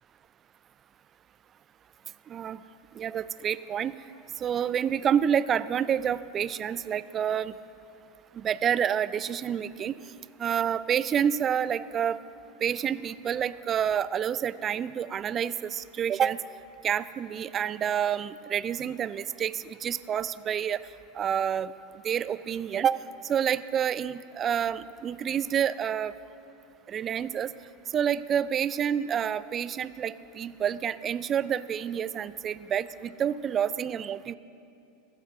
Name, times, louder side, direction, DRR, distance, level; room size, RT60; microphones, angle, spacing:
voice 1, 2.3-2.6 2.9-4.0 4.4-7.5 8.3-10.0 10.4-12.2 12.6-16.4 16.8-20.8 21.1-21.7 22.0-23.0 23.2-26.1 26.9-27.5 27.9-34.3, right 8 dB, 35° right, 17 dB, 0.3 m, -28 dB
15.0 x 7.5 x 4.9 m, 2.7 s
hypercardioid pair, 90°, 0 cm